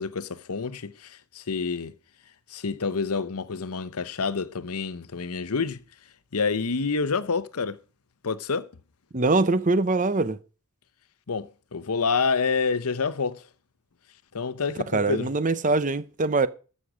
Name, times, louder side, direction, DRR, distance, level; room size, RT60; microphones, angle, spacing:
voice 1, 0.0-1.9 2.5-5.8 6.3-7.8 8.2-8.7 11.3-13.5 14.3-15.3, left 5 dB, 85° left, 0.8 m, -28 dB
voice 2, 9.1-10.4 14.9-16.5, right 3 dB, 35° right, 0.7 m, -23 dB
13.0 x 7.6 x 5.0 m
head